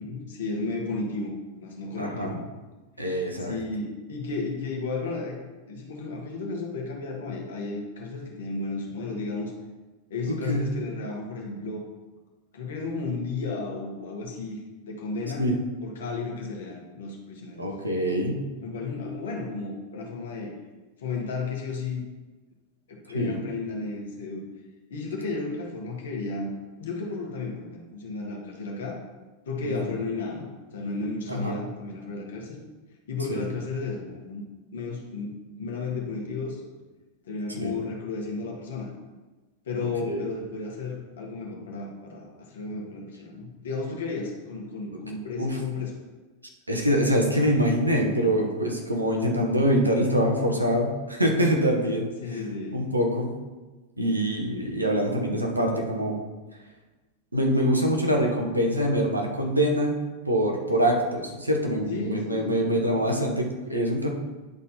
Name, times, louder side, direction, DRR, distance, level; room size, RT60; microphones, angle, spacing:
voice 1, 0.0-2.4 3.3-5.4 5.7-9.5 10.1-11.8 12.5-15.5 15.8-17.6 18.6-20.5 21.0-22.0 22.9-24.4 24.9-29.0 29.4-32.6 33.1-34.4 34.7-36.6 37.2-38.9 39.6-45.9 52.2-52.8 61.9-63.2, left 3 dB, 60° left, 0 dB, 1.7 m, -33 dB
voice 2, 2.0-2.4 3.0-3.5 10.3-10.7 15.4-15.5 17.6-18.4 23.1-23.4 29.6-29.7 31.3-31.5 33.3-33.4 37.6-37.7 40.0-40.2 45.4-45.6 46.7-52.1 52.7-53.3 54.0-56.2 57.3-60.0 60.3-64.1, equal, 85° right, 1 dB, 1.3 m, -24 dB
10.5 x 4.2 x 4.3 m, 1.2 s
figure-of-eight pair, 90°, 0 cm